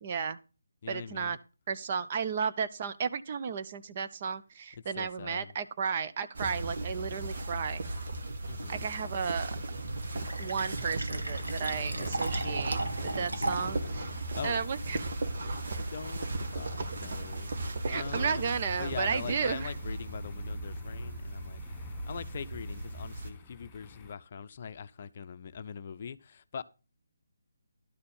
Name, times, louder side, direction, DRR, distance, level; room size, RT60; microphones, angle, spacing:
voice 1, 0.0-0.4 0.9-1.4 1.7-7.8 8.7-9.5 10.4-14.1 14.4-15.0 17.8-19.7, right 6 dB, 35° right, 0.7 m, -33 dB
voice 2, 0.8-1.4 4.7-5.5 8.5-8.8 11.8-14.6 15.9-17.5 17.9-26.6, left 7 dB, 40° left, 0.6 m, -43 dB
sound 1, 6.3-23.3, right 2 dB, 55° right, 1.6 m, -37 dB
Fill (with liquid), 9.8-13.8, right 2 dB, 80° right, 1.6 m, -36 dB
sound 2, 11.1-24.1, left 6 dB, 15° left, 1.0 m, -51 dB
12.0 x 4.3 x 7.0 m
figure-of-eight pair, 150°, 0 cm